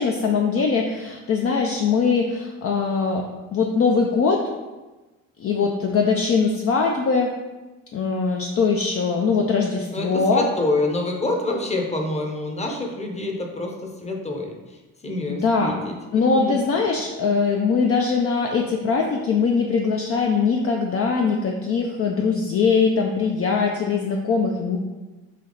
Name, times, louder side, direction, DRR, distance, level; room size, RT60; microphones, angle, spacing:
voice 1, 0.0-4.4 5.4-7.3 7.9-10.5 15.3-15.8 16.1-24.8, left 5 dB, 40° left, 1 dB, 0.5 m, -21 dB
voice 2, 9.9-14.8 15.0-16.6, left 2 dB, 20° left, 1 dB, 0.8 m, -27 dB
3.4 x 2.8 x 3.9 m, 1.2 s
supercardioid pair, 60°, 35 cm